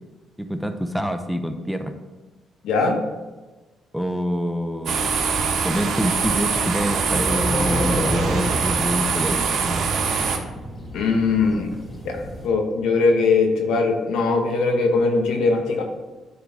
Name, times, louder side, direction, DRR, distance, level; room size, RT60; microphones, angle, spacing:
voice 1, 0.4-1.9 3.9-5.0 5.6-9.9, equal, ahead, 7 dB, 0.8 m, -26 dB
voice 2, 2.6-3.0 10.9-11.7 12.0-12.2 12.4-15.8, left 4 dB, 85° left, 3 dB, 1.4 m, -20 dB
sound 1, 4.9-10.4, right 5 dB, 65° right, 1.3 m, -23 dB
sound 2, 7.1-12.5, left 1 dB, 30° left, 1.8 m, -30 dB
10.0 x 3.9 x 6.2 m, 1.2 s
cardioid pair, 90°, 0 cm